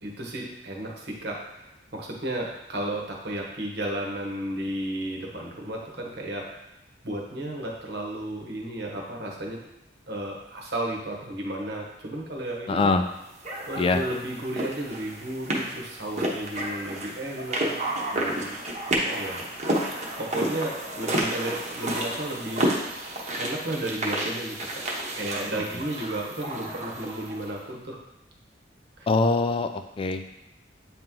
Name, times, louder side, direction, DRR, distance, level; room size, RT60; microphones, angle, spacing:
voice 1, 0.0-6.5 7.0-9.6 10.1-12.9 13.7-17.8 18.1-18.6 18.9-19.5 20.2-24.8 25.1-28.0 29.0-29.1, right 1 dB, 65° right, -1 dB, 1.2 m, -33 dB
voice 2, 12.7-13.0 13.8-14.0 29.1-30.2, left 3 dB, 30° left, 8 dB, 0.3 m, -23 dB
sound 1, 13.4-27.5, right 1 dB, 40° right, 1.0 m, -31 dB
8.6 x 3.0 x 3.7 m, 0.88 s
head